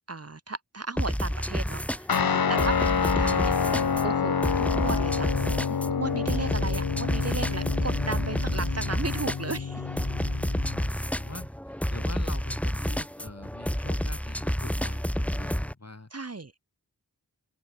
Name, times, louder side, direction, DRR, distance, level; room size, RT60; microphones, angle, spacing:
voice 1, 0.1-5.3 5.7-9.9 16.1-16.5, right 3 dB, 40° right, 1.4 m, -35 dB
sound 1, 1.0-15.7, equal, 5° left, 2.9 m, -30 dB
Guitar, 2.1-10.9, left 6 dB, 65° left, 1.1 m, -28 dB
voice 2, 10.5-16.1, left 2 dB, 45° left, 6.3 m, -44 dB
open air
wide cardioid pair, 65°, 38 cm